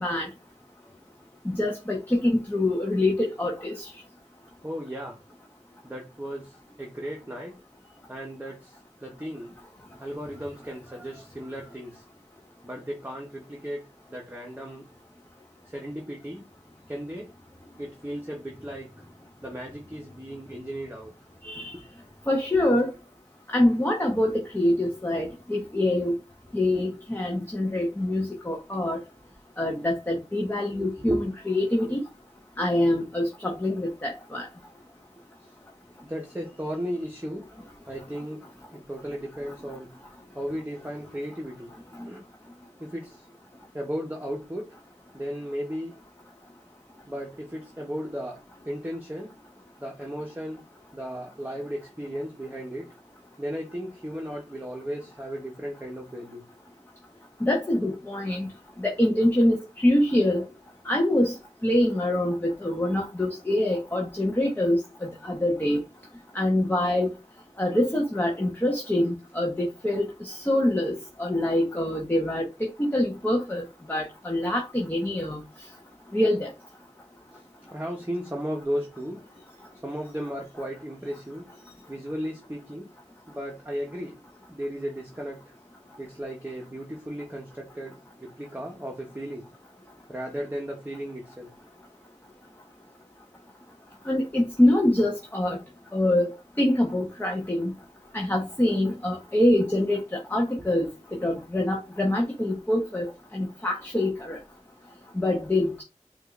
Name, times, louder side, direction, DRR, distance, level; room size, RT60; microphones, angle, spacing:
voice 1, 1.5-3.7 21.4-21.7 22.3-22.9 23.5-26.1 26.5-29.0 29.6-32.0 32.6-34.4 57.4-58.5 58.8-59.6 59.8-60.4 60.9-61.3 61.6-64.8 65.2-65.8 66.3-67.1 67.6-70.9 71.2-72.4 72.8-73.6 73.9-75.4 76.1-76.5 94.1-95.6 95.9-96.3 96.6-97.7 98.1-100.0 100.3-100.9 101.2-103.1 103.3-104.4 105.2-105.8, left 1 dB, 15° left, 1.0 m, -24 dB
voice 2, 4.6-5.2 5.8-7.6 8.1-8.8 9.0-9.5 10.0-12.0 12.6-14.8 15.7-16.4 16.9-17.3 17.8-18.9 19.4-21.1 26.6-26.8 28.1-28.2 30.6-31.3 31.8-32.0 36.0-37.5 37.9-38.4 38.7-39.9 40.3-41.7 42.0-42.2 42.8-43.2 43.7-44.8 45.1-45.9 47.1-49.3 49.8-50.6 50.9-52.9 53.4-56.4 77.3-77.4 77.7-79.2 79.8-81.4 81.9-82.9 83.3-84.2 84.5-85.4 86.0-89.5 90.1-91.5, equal, 15° right, 1.1 m, -35 dB
4.9 x 2.6 x 2.4 m
wide cardioid pair, 45°, 13 cm